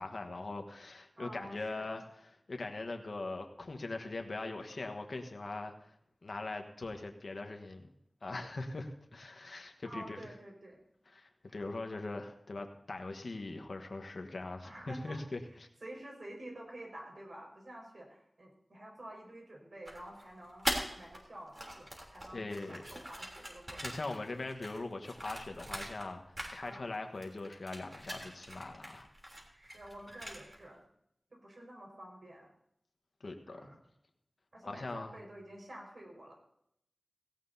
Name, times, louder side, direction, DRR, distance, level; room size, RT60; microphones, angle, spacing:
voice 1, 0.0-2.0 2.5-5.9 6.2-7.9 8.2-10.2 11.1-15.7 22.3-22.8 23.8-29.1 33.2-33.6 34.6-35.2, left 2 dB, 75° left, 4 dB, 1.2 m, -41 dB
voice 2, 1.2-2.0 9.8-10.8 11.5-11.7 14.6-15.2 15.8-24.0 26.6-26.8 29.5-30.9 31.3-32.5 33.5-33.8 34.5-36.3, right 1 dB, 70° right, 0 dB, 5.0 m, -49 dB
sound 1, 19.9-21.2 21.5-26.1 26.3-27.0 27.2-30.6, equal, 30° right, 3.2 m, -42 dB
17.0 x 16.5 x 2.7 m, 0.72 s
wide cardioid pair, 60°, 0 cm